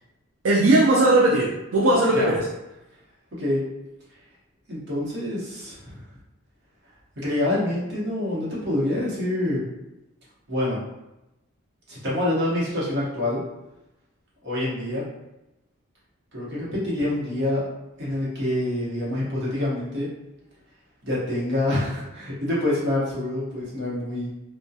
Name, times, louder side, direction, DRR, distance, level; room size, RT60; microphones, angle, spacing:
voice 1, 0.4-2.5, right 2 dB, 70° right, -4 dB, 0.4 m, -18 dB
voice 2, 4.7-6.0 7.2-9.6 10.5-10.8 11.9-13.4 14.4-15.0 16.3-17.6 18.0-20.1 21.0-24.3, left 1 dB, 55° right, -6 dB, 0.9 m, -26 dB
2.3 x 2.1 x 2.6 m, 0.94 s
head